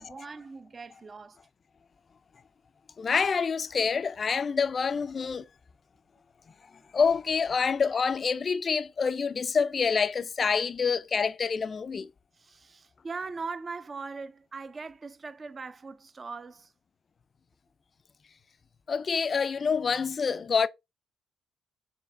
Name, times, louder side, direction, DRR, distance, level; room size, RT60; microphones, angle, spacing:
voice 1, 0.0-1.4 12.4-16.7, right 4 dB, 35° right, 0.4 m, -40 dB
voice 2, 3.0-5.5 6.9-12.1 18.9-20.7, left 5 dB, 40° left, 0.3 m, -27 dB
4.4 x 3.3 x 3.2 m
cardioid pair, 90°, 0 cm